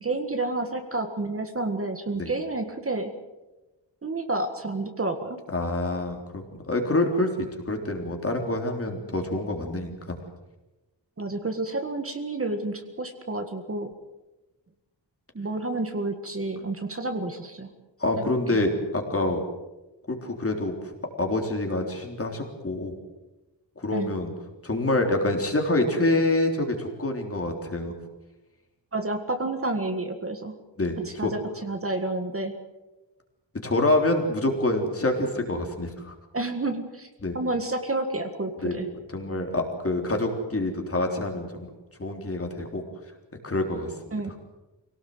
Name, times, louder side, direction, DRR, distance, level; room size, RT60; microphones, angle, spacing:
voice 1, 0.0-3.1 4.0-5.4 11.2-13.9 15.4-17.7 18.5-18.6 23.9-24.1 28.9-30.5 31.0-32.5 36.3-37.1 37.3-38.9 44.1-44.3, right 2 dB, 30° right, 6 dB, 1.8 m, -30 dB
voice 2, 5.5-10.2 18.0-19.4 20.1-23.0 23.8-24.3 24.6-27.9 30.8-31.3 33.6-36.1 37.2-37.4 38.6-38.7 39.1-41.7 42.0-42.8 43.4-43.9, left 2 dB, 30° left, 3 dB, 3.6 m, -26 dB
25.0 x 18.0 x 7.9 m, 1.1 s
wide cardioid pair, 155°, 44 cm